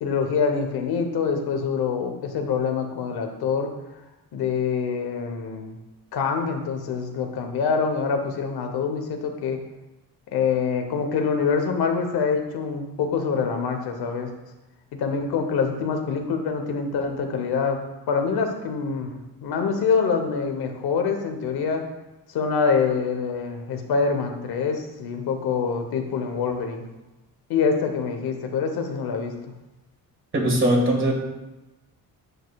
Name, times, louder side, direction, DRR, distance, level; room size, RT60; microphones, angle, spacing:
voice 1, 0.0-3.7 4.3-5.7 6.1-9.6 10.3-14.3 15.0-17.8 18.1-21.8 22.3-26.8 27.5-29.3, left 5 dB, 85° left, 5 dB, 1.0 m, -25 dB
voice 2, 30.3-31.1, right 1 dB, 35° right, 0 dB, 1.7 m, -20 dB
8.9 x 6.5 x 2.3 m, 1.0 s
cardioid pair, 120°, 37 cm